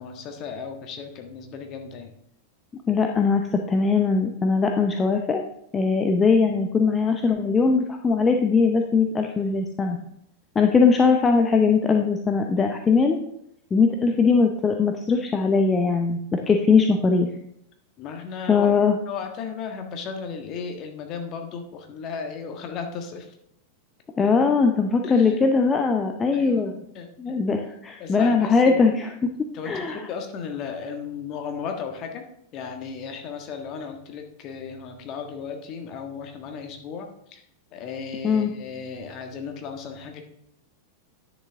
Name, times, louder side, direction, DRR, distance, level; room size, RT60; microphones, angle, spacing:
voice 1, 0.0-2.1 18.0-18.7 19.1-23.3 25.0-25.4 26.3-26.6 26.9-27.4 28.0-28.8 29.5-32.2 32.5-37.4 37.7-40.2, left 6 dB, 35° left, 4 dB, 1.5 m, -35 dB
voice 2, 2.9-5.4 5.7-10.0 10.5-13.2 13.7-17.3 18.4-19.0 24.2-26.8 27.2-29.3 29.6-30.0 38.2-38.5, left 4 dB, 20° left, 4 dB, 0.7 m, -20 dB
10.0 x 6.6 x 3.6 m, 0.76 s
figure-of-eight pair, 90°, 0 cm